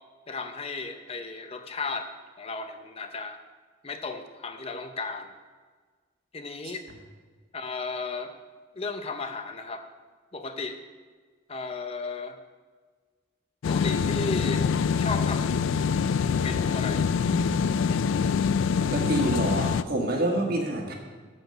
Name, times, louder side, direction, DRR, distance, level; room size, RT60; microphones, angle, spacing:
voice 1, 0.3-2.1 2.4-3.4 3.8-5.3 6.3-6.8 7.5-8.3 8.8-9.9 10.3-10.8 11.5-12.4 13.7-14.7 15.0-15.6 16.4-17.0, left 3 dB, 30° left, 7 dB, 0.6 m, -34 dB
sound 1, 13.6-19.8, left 6 dB, 85° left, 0.3 m, -25 dB
voice 2, 18.9-20.9, right 1 dB, 50° right, 2 dB, 1.7 m, -27 dB
12.5 x 5.0 x 6.5 m, 1.5 s
head